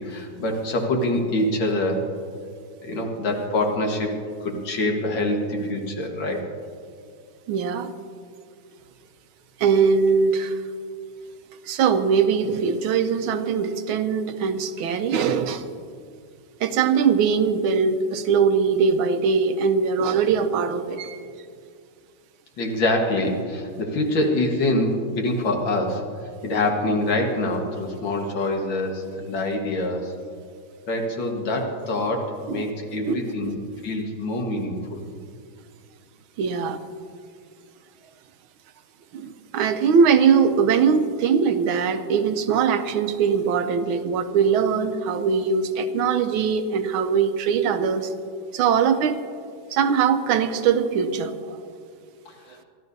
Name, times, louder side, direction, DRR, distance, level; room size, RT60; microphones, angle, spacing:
voice 1, 0.0-2.0 2.8-4.1 4.4-6.4 22.6-26.0 26.4-30.1 30.9-33.6 33.8-35.0 52.3-52.6, left 1 dB, 70° left, 2 dB, 2.2 m, -25 dB
voice 2, 7.5-7.9 9.6-10.6 11.6-15.7 16.6-21.2 32.5-32.7 33.1-33.5 36.4-36.8 39.1-48.1 48.5-49.2 49.7-51.6, right 6 dB, 80° right, 9 dB, 1.5 m, -21 dB
24.5 x 13.0 x 2.7 m, 2.2 s
omnidirectional pair, 2.2 m